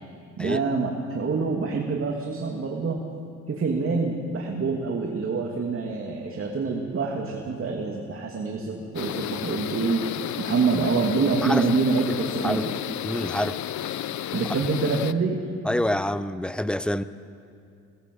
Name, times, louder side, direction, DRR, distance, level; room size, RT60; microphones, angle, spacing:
voice 1, 0.4-3.0 3.5-10.1 10.4-12.7 14.3-15.4, right 4 dB, 45° right, 1 dB, 2.6 m, -26 dB
sound 1, 8.9-15.1, left 12 dB, 70° left, 0.8 m, -32 dB
voice 2, 13.0-13.6 15.7-17.0, left 1 dB, 5° left, 13 dB, 0.8 m, -26 dB
23.0 x 19.0 x 7.8 m, 2.4 s
cardioid pair, 90°, 30 cm